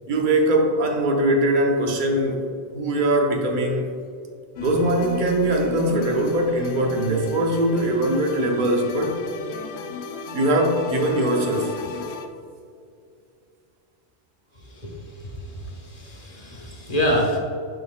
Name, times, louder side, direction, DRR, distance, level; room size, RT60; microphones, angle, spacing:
voice 1, 0.1-2.4 2.7-4.0 4.6-9.2 10.3-11.7, right 1 dB, 50° right, 2 dB, 0.9 m, -21 dB
sound 1, 4.6-12.3, left 5 dB, 75° left, 0.9 m, -36 dB
voice 2, 15.9-17.4, equal, 35° left, -1 dB, 1.2 m, -25 dB
10.5 x 4.3 x 2.2 m, 2.3 s
omnidirectional pair, 1.1 m